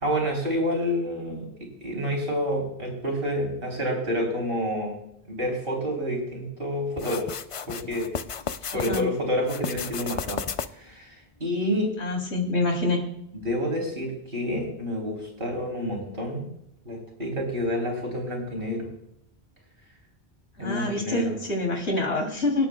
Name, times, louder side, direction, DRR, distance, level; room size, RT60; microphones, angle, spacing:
voice 1, 0.0-1.5 1.8-5.0 5.3-7.3 7.7-8.1 8.7-10.4 10.8-11.1 11.4-11.9 13.3-16.5 16.8-18.9 20.6-21.3, equal, 55° right, -1 dB, 3.6 m, -28 dB
sound 1, 7.0-9.0 9.4-10.9, left 7 dB, 55° left, 0.3 m, -33 dB
voice 2, 8.7-9.0 12.0-13.1 20.6-22.7, left 2 dB, 90° left, 0 dB, 3.3 m, -26 dB
25.5 x 8.7 x 2.3 m, 0.76 s
omnidirectional pair, 1.1 m